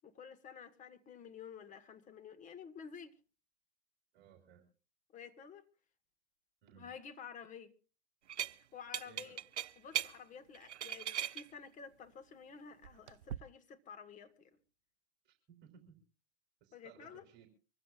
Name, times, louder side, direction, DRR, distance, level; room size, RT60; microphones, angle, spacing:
voice 1, 0.0-3.2 5.1-5.6 6.8-7.7 8.6-9.4 9.8-14.6 16.7-17.2, left 6 dB, 20° left, 1.6 m, -51 dB
voice 2, 4.1-4.7 6.6-6.9 9.0-9.4 15.2-16.0 16.6-17.5, right 9 dB, 30° right, 3.7 m, -61 dB
sound 1, 8.3-8.5 8.9-10.1 10.5-11.4 12.8-13.4, right 11 dB, 80° right, 0.7 m, -38 dB
25.0 x 15.5 x 2.4 m
hypercardioid pair, 120°, 34 cm